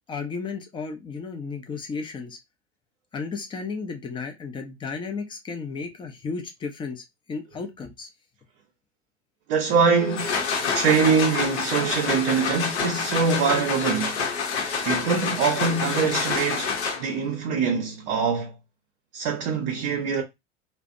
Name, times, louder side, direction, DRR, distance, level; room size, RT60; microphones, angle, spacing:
voice 1, 0.1-2.4 3.1-8.1, left 4 dB, 15° left, 0.5 m, -34 dB
voice 2, 9.5-10.4 10.7-14.2 14.8-18.5 19.1-20.2, right 5 dB, 50° right, 0.7 m, -23 dB
sound 1, 9.9-17.3, left 5 dB, 65° left, 0.8 m, -27 dB
2.4 x 2.1 x 2.5 m
figure-of-eight pair, 85°, 36 cm